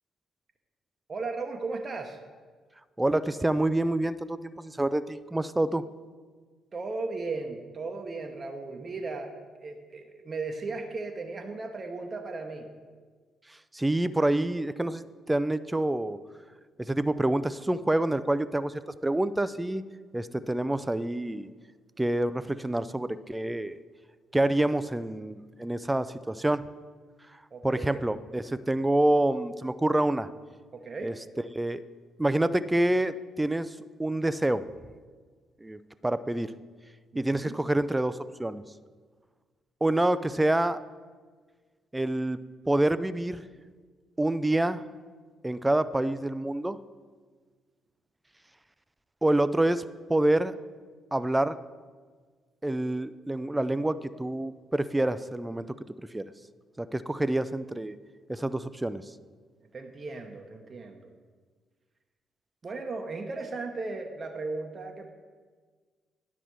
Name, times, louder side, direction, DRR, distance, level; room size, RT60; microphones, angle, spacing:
voice 1, 1.1-2.2 6.7-9.3 9.6-12.7 27.5-28.0 30.7-31.1 37.1-37.6 59.7-61.1 62.6-65.1, right 3 dB, 40° right, 4 dB, 0.8 m, -36 dB
voice 2, 3.0-5.8 13.7-16.2 16.8-19.8 20.1-21.5 22.0-23.8 24.3-26.7 27.6-30.3 31.0-31.1 31.5-31.8 32.2-34.6 35.6-36.5 37.2-38.6 39.8-40.8 41.9-43.4 44.2-44.8 45.4-46.8 49.2-49.8 50.1-50.5 51.1-51.5 52.6-55.7 56.1-56.2 56.8-58.0 58.3-59.0, right 1 dB, 15° right, 15 dB, 0.4 m, -27 dB
10.0 x 6.0 x 4.6 m, 1.5 s
hypercardioid pair, 45°, 0 cm